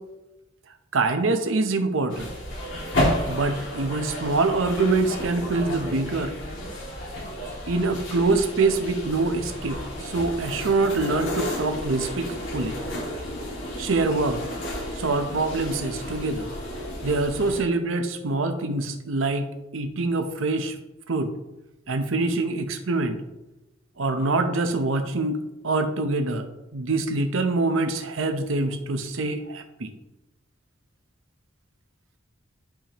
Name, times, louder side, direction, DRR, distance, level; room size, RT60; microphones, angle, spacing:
voice 1, 0.9-2.3 3.3-6.3 7.7-12.3 12.5-12.8 13.8-14.4 14.9-16.5 17.0-20.8 21.1-21.3 21.9-23.2 24.0-26.5 26.7-29.9, right 3 dB, 85° right, 7 dB, 0.8 m, -25 dB
sound 1, 2.1-17.6, equal, 70° left, 2.5 m, -32 dB
11.5 x 5.0 x 3.0 m, 0.99 s
head